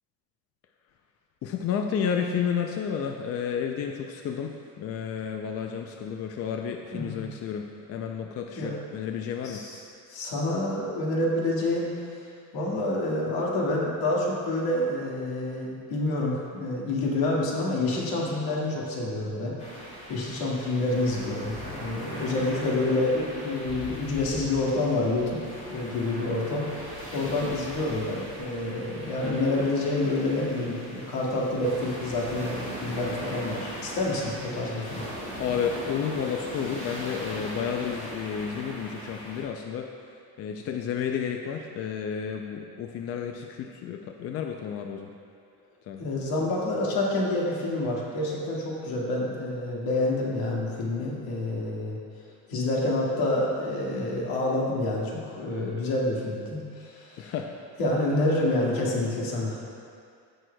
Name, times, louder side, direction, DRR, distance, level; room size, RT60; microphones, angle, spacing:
voice 1, 1.4-9.6 35.4-39.9 40.4-45.1 45.9-46.0 57.2-57.5, left 7 dB, 40° left, 3 dB, 0.4 m, -31 dB
voice 2, 6.9-7.2 8.6-8.8 9.4-9.8 10.1-11.9 12.5-19.6 20.1-35.0 46.0-52.0 52.5-57.3 57.8-59.6, left 2 dB, 75° left, -3 dB, 1.9 m, -28 dB
sound 1, 19.6-39.4, equal, 20° left, 2.0 m, -39 dB
15.5 x 6.2 x 2.2 m, 2.3 s
cardioid pair, 155°, 37 cm